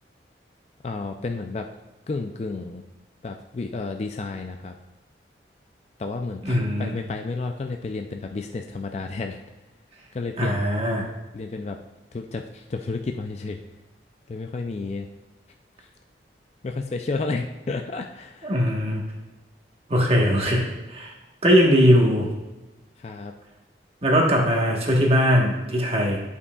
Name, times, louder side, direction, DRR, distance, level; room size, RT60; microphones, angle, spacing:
voice 1, 0.8-1.7 2.1-2.8 3.2-4.7 6.0-9.4 10.1-10.6 11.3-11.8 12.1-13.6 14.3-15.1 16.6-18.6 23.0-23.3, left 3 dB, 35° left, 4 dB, 0.4 m, -31 dB
voice 2, 6.4-6.9 10.4-11.1 18.4-19.0 19.9-21.1 21.4-22.3 24.0-26.2, equal, 35° right, -1 dB, 1.2 m, -20 dB
11.0 x 5.5 x 2.3 m, 1.1 s
head